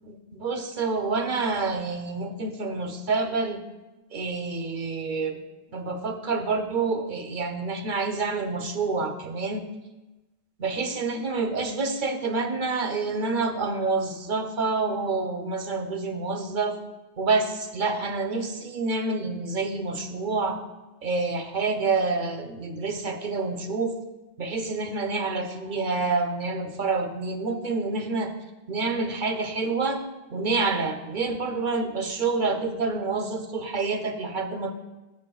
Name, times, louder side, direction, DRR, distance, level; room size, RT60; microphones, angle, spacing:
voice 1, 0.0-3.6 4.1-5.4 5.7-9.7 10.6-16.8 17.2-20.6 21.0-23.9 24.4-28.3 28.7-30.0 30.3-34.7, right 3 dB, 50° right, 7 dB, 0.7 m, -28 dB
14.0 x 6.9 x 2.3 m, 1.1 s
omnidirectional pair, 1.2 m